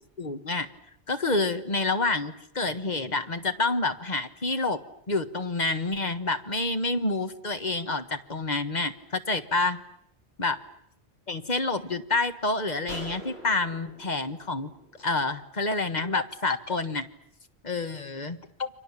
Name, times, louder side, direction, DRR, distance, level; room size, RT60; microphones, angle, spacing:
voice 1, 0.2-0.7 1.1-4.8 5.1-9.8 10.4-10.6 11.3-14.7 15.0-17.1 17.6-18.7, left 3 dB, 45° left, 9 dB, 1.5 m, -28 dB
sound 1, 12.9-15.5, equal, 85° left, 6.1 m, -44 dB
30.0 x 25.0 x 7.4 m, 0.71 s
omnidirectional pair, 1.1 m